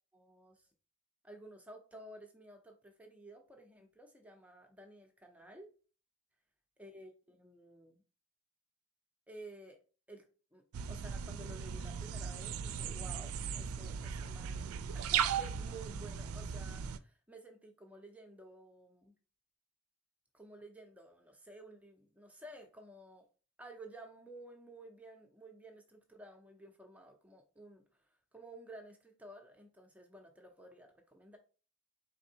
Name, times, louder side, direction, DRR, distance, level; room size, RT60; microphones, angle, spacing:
voice 1, 0.1-0.7 1.2-5.7 6.8-8.0 9.3-9.8 10.1-19.1 20.3-23.3 23.6-27.8 28.3-31.4, right 1 dB, 5° right, 0.5 m, -53 dB
sound 1, 10.7-17.0, right 8 dB, 75° right, 0.3 m, -37 dB
4.3 x 3.4 x 2.8 m
head